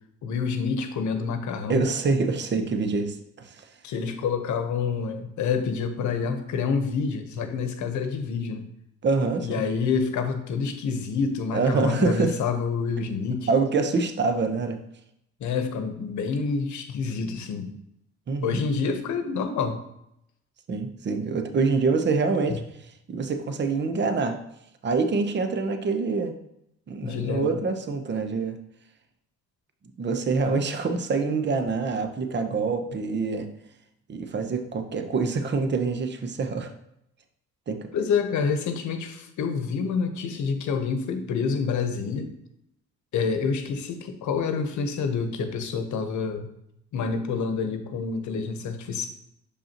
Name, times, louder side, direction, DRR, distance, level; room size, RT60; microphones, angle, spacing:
voice 1, 0.2-1.8 3.8-8.7 9.4-13.5 15.4-17.8 18.4-19.8 27.0-27.5 37.9-42.3 43.1-46.5 46.9-49.1, left 5 dB, 75° left, 8 dB, 0.9 m, -27 dB
voice 2, 1.7-3.6 9.0-9.6 11.5-12.4 13.5-14.8 18.3-18.6 20.7-22.6 23.1-24.4 24.8-26.3 26.9-28.6 30.0-33.5 34.1-36.7 37.7-37.9, right 4 dB, 35° right, 7 dB, 0.7 m, -25 dB
6.5 x 5.2 x 2.9 m, 0.79 s
cardioid pair, 90°, 30 cm